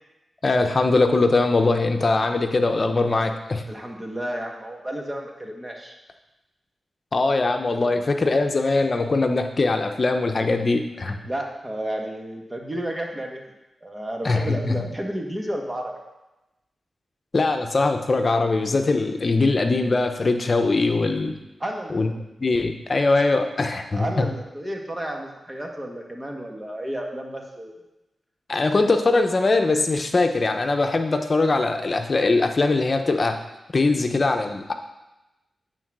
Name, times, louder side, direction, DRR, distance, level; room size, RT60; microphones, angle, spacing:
voice 1, 0.4-3.6 7.1-11.2 14.2-14.8 17.3-21.3 21.9-22.1 22.4-24.3 28.5-33.4 33.7-34.7, left 3 dB, 50° left, 6 dB, 0.8 m, -21 dB
voice 2, 3.7-6.0 7.9-8.1 11.2-13.4 13.8-16.0 21.6-22.2 23.9-27.7 34.0-34.2, right 1 dB, 20° right, 1 dB, 1.6 m, -32 dB
9.0 x 4.0 x 6.1 m, 1.0 s
cardioid pair, 55°, 0 cm